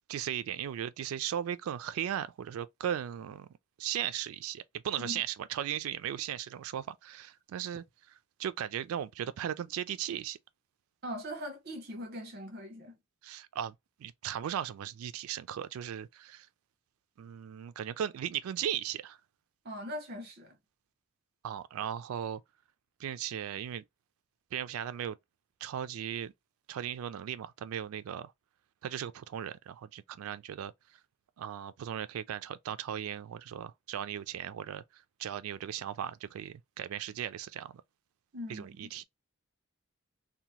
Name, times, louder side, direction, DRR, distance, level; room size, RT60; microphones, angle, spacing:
voice 1, 0.1-7.8 8.4-10.4 13.2-16.5 17.2-19.2 21.4-22.4 23.0-23.8 24.5-25.2 25.6-26.3 26.7-28.3 28.8-30.7 31.4-37.8 38.5-39.0, right 10 dB, 80° right, 0.3 m, -37 dB
voice 2, 11.0-12.9 19.6-20.6 38.3-38.9, equal, 50° right, 0.9 m, -41 dB
2.8 x 2.1 x 3.0 m
head